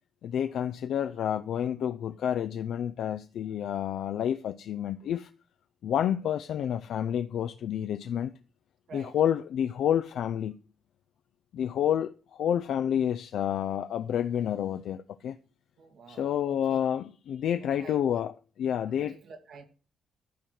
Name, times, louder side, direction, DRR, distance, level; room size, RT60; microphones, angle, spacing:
voice 1, 0.2-5.3 5.8-8.3 8.9-10.6 11.5-15.4 16.1-19.2, left 9 dB, 75° left, 0.5 m, -29 dB
voice 2, 15.8-16.8 17.6-18.2 18.8-19.6, right 4 dB, 65° right, 2.0 m, -48 dB
12.0 x 4.4 x 6.4 m
cardioid pair, 120°, 0 cm